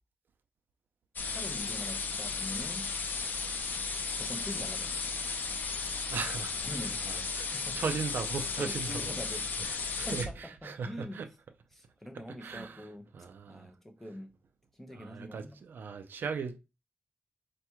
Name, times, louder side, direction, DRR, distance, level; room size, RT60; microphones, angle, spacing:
sound 1, 1.2-10.3, left 4 dB, 60° left, 0.5 m, -35 dB
voice 1, 1.2-2.9 4.1-5.1 6.6-7.3 7.5-8.0 8.6-9.5 10.1-10.3 10.6-11.2 11.7-13.1 13.5-14.3 14.8-15.6, equal, 10° left, 0.7 m, -43 dB
voice 2, 6.1-11.3 12.1-12.9 13.1-13.7 14.9-16.6, right 5 dB, 80° right, 0.4 m, -38 dB
4.2 x 2.2 x 4.5 m
wide cardioid pair, 165°, 3 cm